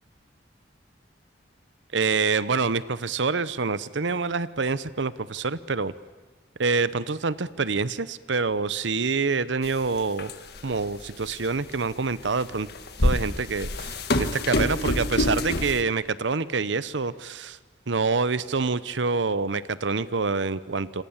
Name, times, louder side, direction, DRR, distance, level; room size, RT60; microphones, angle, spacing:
voice 1, 1.9-5.9 6.6-10.3 10.6-12.7 13.0-17.6 17.9-21.0, right 4 dB, 75° right, 16 dB, 0.8 m, -26 dB
sound 1, 9.7-9.8 10.2-10.7 11.4-11.5 12.5-15.8, left 1 dB, 55° left, 1.7 m, -26 dB
27.5 x 26.0 x 7.3 m, 1.3 s
head